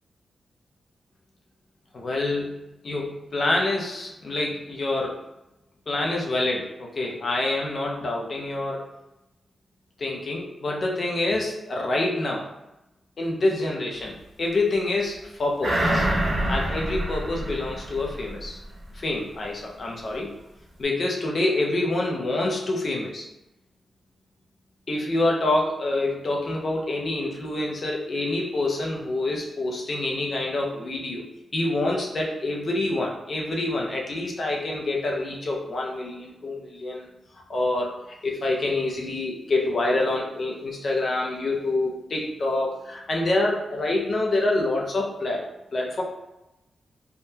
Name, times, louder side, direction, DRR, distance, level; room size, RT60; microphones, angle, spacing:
voice 1, 1.9-2.6 2.8-5.2 5.9-8.9 10.0-12.5 13.2-16.1 16.5-18.6 18.9-20.3 20.8-23.2 24.9-31.3 31.5-37.1 37.5-45.5 45.7-46.0, left 2 dB, 45° left, -1 dB, 0.5 m, -26 dB
sound 1, 15.6-18.5 18.9-19.0, right 1 dB, 30° right, 0.6 m, -26 dB
3.5 x 2.2 x 2.7 m, 0.94 s
wide cardioid pair, 150°, 0 cm